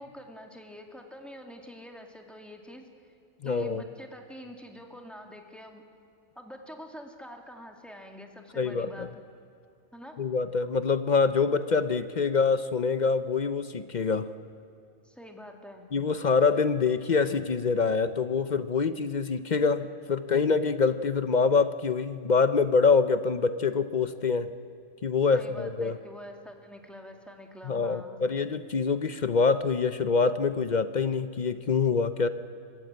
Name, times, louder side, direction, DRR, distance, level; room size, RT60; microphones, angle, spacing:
voice 1, 0.0-2.8 3.4-5.8 6.4-9.2 9.9-10.2 15.0-15.9 25.3-28.2, equal, ahead, 3 dB, 2.1 m, -46 dB
voice 2, 3.4-3.8 8.6-9.1 10.2-14.3 15.9-24.5 25.0-26.0 27.6-32.3, left 5 dB, 45° left, 12 dB, 0.6 m, -25 dB
24.0 x 14.5 x 8.8 m, 2.6 s
omnidirectional pair, 1.3 m